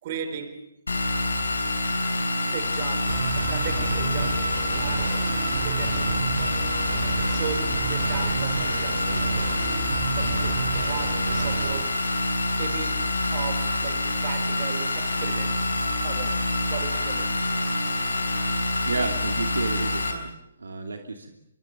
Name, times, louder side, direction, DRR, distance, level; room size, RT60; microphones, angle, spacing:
voice 1, 0.0-0.7 2.5-6.2 7.3-9.4 10.1-12.1 12.6-15.7 16.0-17.4, right 7 dB, 40° right, 4.2 m, -37 dB
sound 1, 0.9-20.1, left 2 dB, 80° left, 5.1 m, -26 dB
sound 2, 3.1-11.8, right 6 dB, 55° right, 4.7 m, -31 dB
voice 2, 18.8-20.3 20.6-21.3, right 3 dB, 75° right, 2.8 m, -31 dB
24.5 x 24.0 x 6.9 m
figure-of-eight pair, 140°, 0 cm